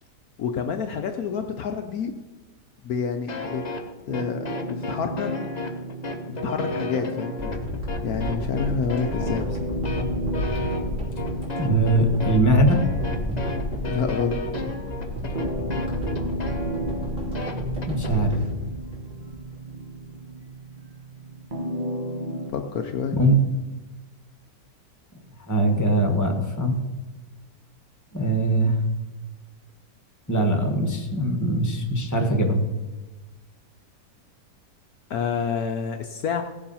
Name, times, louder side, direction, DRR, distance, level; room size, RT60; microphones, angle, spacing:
voice 1, 0.4-2.1 2.8-3.7 4.0-5.3 6.3-7.6 8.0-9.7 13.9-14.4 22.5-23.2 35.1-36.4, left 6 dB, 65° left, 6 dB, 1.1 m, -28 dB
sound 1, 3.3-18.1, left 2 dB, 30° left, 0.9 m, -33 dB
sound 2, 4.1-22.5, right 1 dB, 30° right, 1.2 m, -35 dB
sound 3, 7.4-19.6 20.1-20.2, left 1 dB, 45° right, 3.6 m, -31 dB
voice 2, 11.6-12.9 17.9-18.4 23.2-23.3 25.5-26.8 28.1-28.8 30.3-32.6, right 1 dB, 10° left, 4 dB, 1.3 m, -21 dB
17.0 x 7.1 x 5.6 m, 1.2 s
omnidirectional pair, 1.8 m